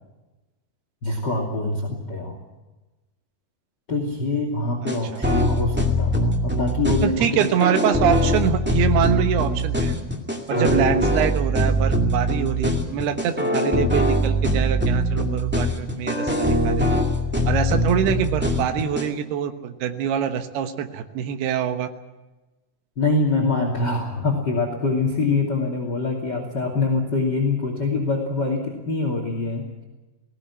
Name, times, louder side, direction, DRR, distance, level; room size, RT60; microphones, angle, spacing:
voice 1, 1.0-2.4 3.9-7.5 10.5-10.8 23.0-29.7, left 3 dB, 30° left, 2 dB, 2.8 m, -24 dB
sound 1, 4.9-19.1, equal, 10° right, 0.7 m, -22 dB
voice 2, 7.0-9.9 10.5-17.0 17.5-21.9, right 9 dB, 80° right, 7 dB, 3.2 m, -24 dB
20.0 x 16.5 x 9.8 m, 1.1 s
omnidirectional pair, 4.5 m